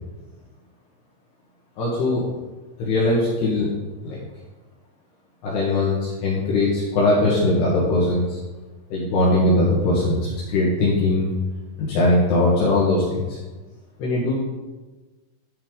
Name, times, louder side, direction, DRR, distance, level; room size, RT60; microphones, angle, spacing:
voice 1, 1.8-2.3 2.8-3.7 4.0-4.2 5.4-8.4 8.9-11.3 11.8-13.4 14.0-14.3, left 2 dB, 65° left, -6 dB, 3.5 m, -20 dB
10.5 x 10.5 x 3.9 m, 1.2 s
omnidirectional pair, 5.6 m